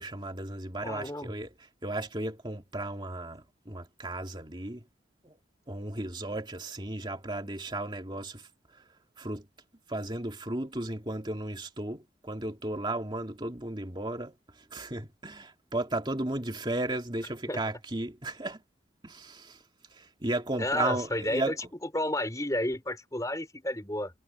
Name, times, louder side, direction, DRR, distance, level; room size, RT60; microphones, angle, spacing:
voice 1, 0.0-1.5 1.8-4.8 5.2-5.3 5.7-8.4 9.2-9.4 9.9-14.3 14.7-18.6 19.0-19.6 20.0-21.6, right 2 dB, 25° right, 2.4 m, -34 dB
voice 2, 0.8-1.3 17.5-17.6 20.6-21.5 21.9-24.1, left 1 dB, 20° left, 4.7 m, -31 dB
head